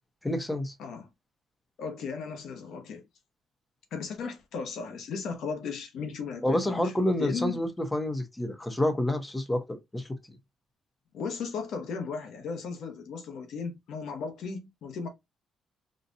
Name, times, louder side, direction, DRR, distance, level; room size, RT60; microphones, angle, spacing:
voice 1, 0.2-0.7 6.4-10.1, left 1 dB, 15° left, 0.9 m, -28 dB
voice 2, 1.8-3.0 3.9-7.5 11.1-15.1, left 5 dB, 75° left, 1.1 m, -36 dB
4.1 x 2.5 x 2.6 m
cardioid pair, 90°, 0 cm